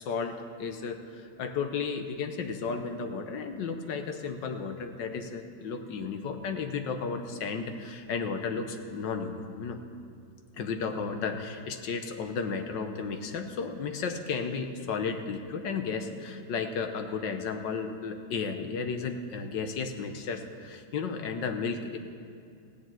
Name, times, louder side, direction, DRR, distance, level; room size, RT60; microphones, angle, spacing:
voice 1, 0.0-9.8 10.5-22.0, left 5 dB, 75° left, 7 dB, 1.6 m, -33 dB
15.5 x 6.8 x 9.1 m, 2.4 s
omnidirectional pair, 2.0 m